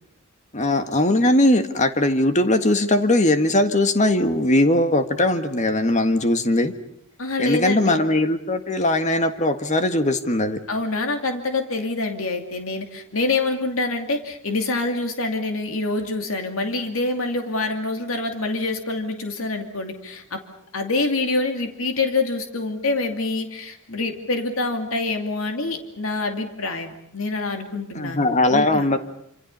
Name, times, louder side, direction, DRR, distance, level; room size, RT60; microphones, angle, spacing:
voice 1, 0.5-6.7 7.4-10.6 27.9-29.0, left 1 dB, 35° left, 8 dB, 1.8 m, -20 dB
voice 2, 7.2-8.0 10.7-20.4 20.7-28.9, left 3 dB, 80° left, 5 dB, 2.6 m, -26 dB
27.0 x 27.0 x 5.5 m, 0.72 s
head